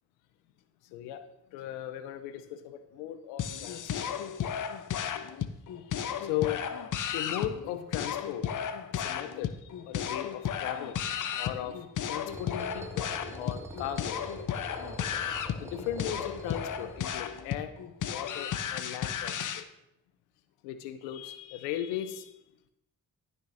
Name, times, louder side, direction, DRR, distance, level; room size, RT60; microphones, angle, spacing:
voice 1, 0.9-4.1 6.2-6.6 7.1-8.5 8.9-13.1 13.4-14.2 15.6-17.7 18.1-19.7 20.6-22.3, left 11 dB, 90° left, 11 dB, 0.7 m, -37 dB
sound 1, 3.4-19.6, left 9 dB, 50° left, 0.7 m, -34 dB
sound 2, 12.3-17.5, equal, 5° right, 2.0 m, -44 dB
14.5 x 6.0 x 2.6 m, 0.83 s
hypercardioid pair, 45°, 40 cm